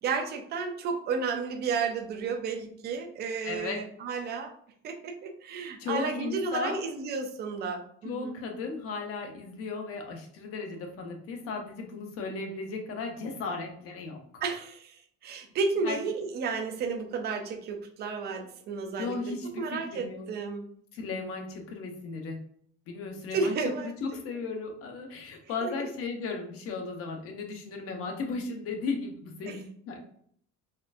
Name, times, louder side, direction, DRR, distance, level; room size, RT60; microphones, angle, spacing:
voice 1, 0.0-4.5 4.8-8.4 14.4-19.2 19.6-20.7 23.3-23.9 25.6-25.7 29.5-29.6, right 4 dB, 35° right, 5 dB, 0.4 m, -32 dB
voice 2, 3.4-3.8 5.8-6.9 8.0-14.4 15.8-16.0 19.0-20.3 20.9-22.4 22.9-23.6 23.8-30.0, left 4 dB, 45° left, 3 dB, 0.7 m, -35 dB
4.3 x 2.5 x 2.4 m, 0.62 s
cardioid pair, 175°, 31 cm